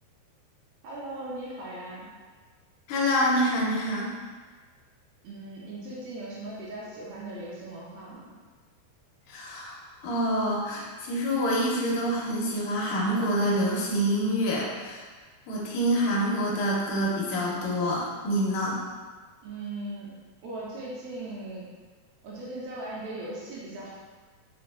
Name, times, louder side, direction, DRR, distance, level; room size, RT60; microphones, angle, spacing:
voice 1, 0.8-2.1 5.2-8.4 19.4-20.2 20.4-21.7 22.2-23.9, right 2 dB, 80° right, -6 dB, 2.2 m, -38 dB
voice 2, 2.9-4.1 9.3-15.0 15.5-18.8, equal, 80° left, -4 dB, 2.0 m, -26 dB
6.2 x 2.2 x 2.3 m, 1.4 s
omnidirectional pair, 4.7 m